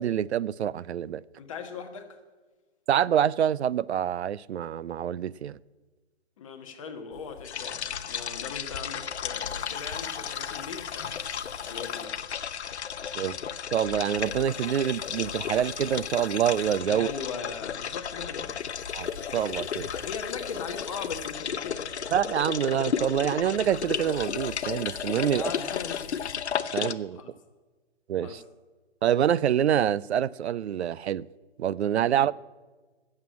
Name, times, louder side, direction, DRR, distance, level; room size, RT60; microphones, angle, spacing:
voice 1, 0.0-1.2 2.9-5.6 13.1-13.4 13.7-17.1 18.9-19.9 22.1-25.5 26.7-27.2 28.1-28.4 29.0-31.3 31.6-32.3, right 10 dB, 75° right, 0.5 m, -26 dB
voice 2, 1.4-2.2 6.4-11.3 11.6-12.3 16.9-18.6 19.9-21.9 25.3-26.1 27.1-27.3 28.2-28.4 32.0-32.3, left 6 dB, 30° left, 1.3 m, -39 dB
sound 1, 7.1-26.5, left 5 dB, 65° left, 2.1 m, -48 dB
sound 2, 7.4-26.9, left 8 dB, 80° left, 0.8 m, -34 dB
14.5 x 7.6 x 8.6 m
hypercardioid pair, 165°, 33 cm